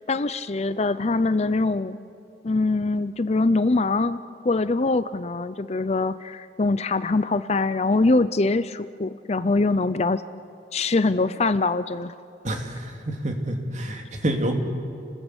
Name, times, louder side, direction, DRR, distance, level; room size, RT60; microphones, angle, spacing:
voice 1, 0.1-2.0 2.4-4.2 4.4-10.2 10.7-12.1, left 3 dB, 35° left, 14 dB, 0.5 m, -23 dB
voice 2, 12.4-14.6, right 1 dB, 40° right, 3 dB, 2.8 m, -28 dB
30.0 x 20.0 x 8.3 m, 2.6 s
head